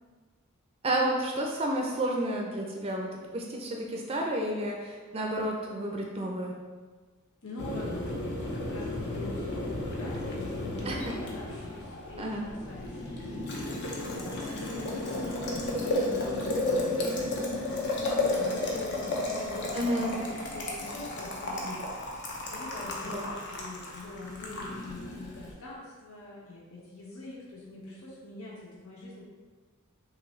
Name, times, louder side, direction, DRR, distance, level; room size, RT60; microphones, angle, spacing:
voice 1, 0.8-6.5 10.8-11.1 12.2-12.4 19.7-20.2 23.1-23.3, right 1 dB, 30° right, 0 dB, 0.5 m, -31 dB
voice 2, 7.4-8.1 8.4-13.1 13.8-17.3 18.3-22.0 22.5-29.2, left 2 dB, 80° left, -5 dB, 1.1 m, -44 dB
Boiling, 7.6-25.5, left 2 dB, 55° left, 0.8 m, -33 dB
6.0 x 2.7 x 3.1 m, 1.4 s
head